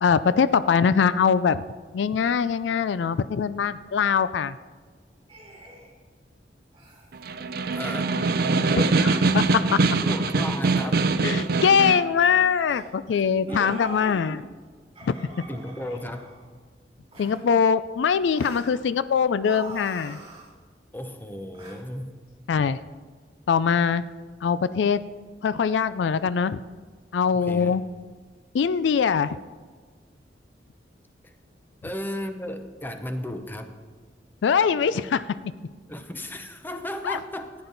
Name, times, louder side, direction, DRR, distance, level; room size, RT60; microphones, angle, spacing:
voice 1, 0.0-1.6 1.9-4.6 9.3-9.8 11.2-14.4 15.1-15.2 17.2-20.2 22.5-22.8 23.5-24.0 24.4-25.0 25.4-26.6 27.1-27.8 28.5-29.4 34.4-35.2 37.0-37.2, left 6 dB, 85° left, 15 dB, 0.4 m, -22 dB
sound 1, 5.3-5.9 6.7-7.1 7.7-7.8 8.1-8.4 9.3-9.7 10.7-10.8 11.8-12.0 12.6-12.9 13.5-14.3 14.9-16.5 17.1-17.4 18.3-18.8 19.4-20.5 21.5-21.8, right 2 dB, 30° right, 3.0 m, -43 dB
Snare drum, 7.1-12.1, right 3 dB, 60° right, 0.5 m, -23 dB
voice 2, 7.6-8.1 8.7-8.9 10.0-11.0 13.1-14.5 15.5-16.3 20.9-22.1 27.3-27.8 31.2-31.3 31.8-33.7 35.9-37.5, left 1 dB, 10° left, 7 dB, 0.8 m, -35 dB
15.0 x 9.6 x 4.0 m, 1.5 s
head